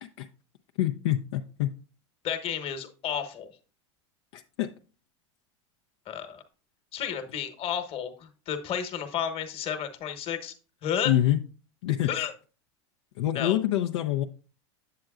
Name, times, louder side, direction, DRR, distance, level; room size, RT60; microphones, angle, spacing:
voice 1, 0.8-1.7 4.3-4.7 11.0-11.4 11.8-12.1 13.2-14.2, left 13 dB, 70° left, 5 dB, 0.5 m, -26 dB
voice 2, 2.2-3.5 6.1-6.4 6.9-10.5 10.8-11.1 12.0-12.3 13.3-13.6, left 8 dB, 40° left, 7 dB, 1.2 m, -32 dB
7.8 x 7.6 x 2.4 m, 0.36 s
hypercardioid pair, 110°, 15 cm